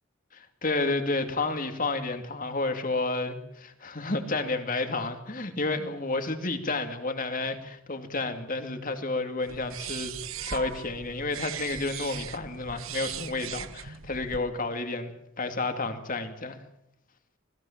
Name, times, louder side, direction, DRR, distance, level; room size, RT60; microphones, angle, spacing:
voice 1, 0.3-15.1 15.4-16.6, left 3 dB, 40° left, 7 dB, 2.6 m, -31 dB
sound 1, 9.4-14.4, right 8 dB, 75° right, 1.2 m, -38 dB
25.5 x 19.5 x 7.4 m, 0.77 s
head